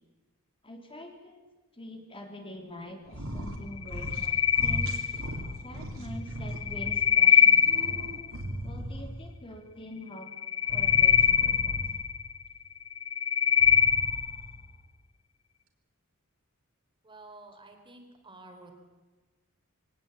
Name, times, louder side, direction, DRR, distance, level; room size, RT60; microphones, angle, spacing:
voice 1, 0.6-1.4 1.7-4.9 5.6-7.9 8.6-10.3 10.7-11.8, left 1 dB, 25° left, 4 dB, 3.3 m, -45 dB
sound 1, 3.1-3.6 3.8-4.3 4.5-6.9 7.4-9.3 10.6-12.1 13.5-14.5, equal, 65° right, 3.5 m, -37 dB
sound 2, 3.8-5.5 6.5-8.3 10.3-12.4 12.9-14.4, left 8 dB, 65° left, 0.9 m, -23 dB
voice 2, 17.0-18.8, right 2 dB, 20° right, 4 dB, 3.5 m, -50 dB
22.5 x 18.5 x 8.8 m, 1.2 s
head